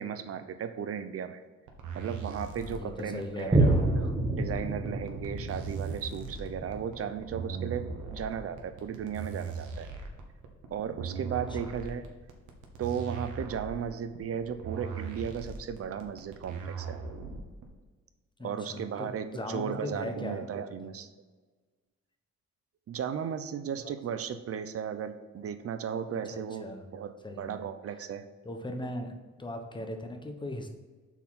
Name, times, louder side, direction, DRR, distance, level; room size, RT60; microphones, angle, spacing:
voice 1, 0.0-1.4 1.9-9.9 10.7-12.1 12.8-17.0 18.4-21.1 22.9-28.2, right 8 dB, 50° right, 10 dB, 0.7 m, -36 dB
sound 1, 1.7-17.6, right 5 dB, 85° right, 1.2 m, -39 dB
voice 2, 2.6-3.9 18.4-18.8 19.3-20.4 23.8-23.9 26.3-26.8 27.2-27.6 28.4-29.1 29.4-30.7, left 1 dB, 15° left, 4 dB, 1.1 m, -38 dB
Boom, 3.5-10.4 10.9-11.0, right 2 dB, 15° right, 1.2 m, -31 dB
6.1 x 4.3 x 5.7 m, 1.4 s
cardioid pair, 90°, 30 cm